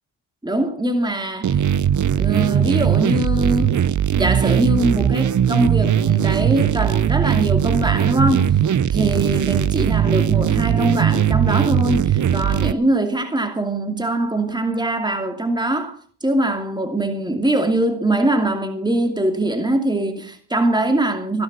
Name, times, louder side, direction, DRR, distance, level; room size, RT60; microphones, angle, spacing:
voice 1, 0.4-1.6 2.2-3.8 4.1-8.6 8.9-21.4, right 1 dB, 10° right, 2.6 m, -22 dB
sound 1, 1.4-12.7, right 9 dB, 40° right, 0.7 m, -19 dB
16.5 x 11.0 x 6.1 m
cardioid pair, 75°, 47 cm